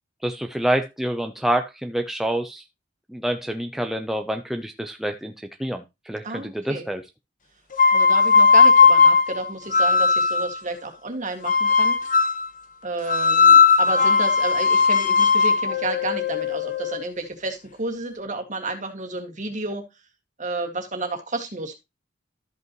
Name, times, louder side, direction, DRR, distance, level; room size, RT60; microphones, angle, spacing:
voice 1, 0.2-2.6 3.1-7.0, right 1 dB, ahead, 5 dB, 0.6 m, -27 dB
voice 2, 6.2-6.8 7.9-12.0 12.8-19.9 20.4-21.8, right 2 dB, 40° right, 4 dB, 1.9 m, -31 dB
sound 1, 7.7-10.6 11.4-12.5 13.1-17.1, left 5 dB, 45° left, 1.2 m, -17 dB
13.0 x 5.5 x 3.0 m, 0.22 s
head